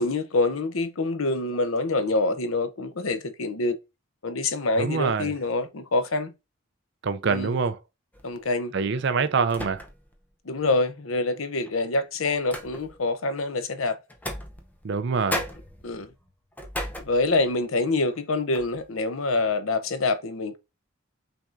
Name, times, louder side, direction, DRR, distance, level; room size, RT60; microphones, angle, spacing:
voice 1, 0.0-3.8 4.2-6.3 7.3-7.6 8.2-8.7 10.5-14.0 15.8-16.1 17.0-20.6, left 2 dB, 85° left, 0.8 m, -26 dB
voice 2, 4.8-5.3 7.0-7.8 8.7-9.8 14.8-15.5, right 5 dB, 55° right, 0.5 m, -25 dB
sound 1, 8.1-8.5 9.5-10.2 10.6-10.7 11.6-13.1 14.1-15.0 15.3-17.6 18.0-18.2 18.5-18.9, left 1 dB, 10° left, 0.7 m, -36 dB
5.9 x 3.5 x 2.6 m
head